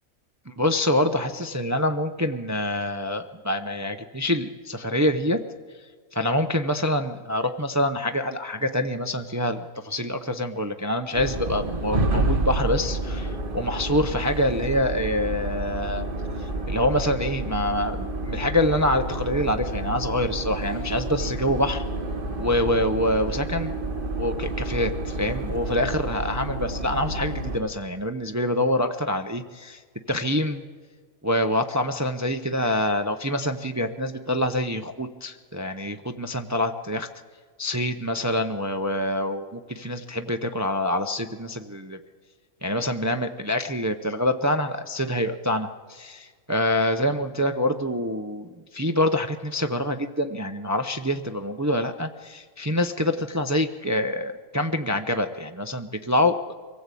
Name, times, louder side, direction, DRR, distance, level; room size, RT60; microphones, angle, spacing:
voice 1, 0.5-5.4 6.1-16.1 16.7-21.8 22.4-23.7 24.2-29.8 30.1-30.6 31.2-37.1 37.6-42.0 42.6-56.5, left 1 dB, 20° right, 7 dB, 0.5 m, -26 dB
sound 1, 11.1-27.6, right 2 dB, 40° right, 1.8 m, -29 dB
24.0 x 15.5 x 8.4 m, 1.6 s
omnidirectional pair, 1.4 m